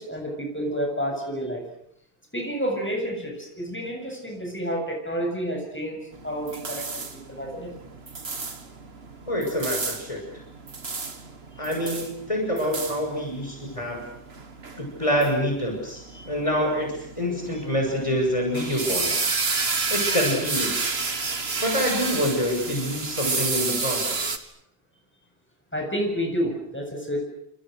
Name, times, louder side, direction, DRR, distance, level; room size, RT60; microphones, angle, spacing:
voice 1, 0.0-1.6 2.3-7.7 16.1-16.3 25.7-27.2, equal, 10° left, 1 dB, 7.3 m, -30 dB
sound 1, 6.1-24.4, right 4 dB, 80° right, 2.2 m, -31 dB
voice 2, 9.3-10.2 11.6-14.0 14.8-19.2 19.6-20.7 21.6-24.3, equal, 30° left, 0 dB, 6.6 m, -26 dB
30.0 x 27.5 x 6.6 m, 0.69 s
omnidirectional pair, 1.0 m